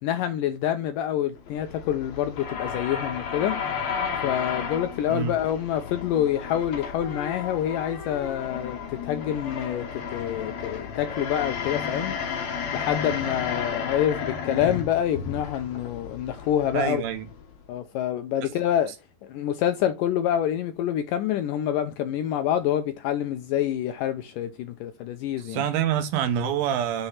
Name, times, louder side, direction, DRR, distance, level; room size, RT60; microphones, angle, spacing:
voice 1, 0.0-3.6 4.2-12.2 12.7-17.0 17.7-18.9 19.3-25.6, left 10 dB, 85° left, 1.9 m, -27 dB
sound 1, 1.4-17.7, left 6 dB, 55° left, 2.3 m, -33 dB
voice 2, 16.7-17.3 18.4-18.5 25.4-27.1, right 9 dB, 75° right, 2.7 m, -26 dB
6.6 x 4.5 x 5.6 m
omnidirectional pair, 4.4 m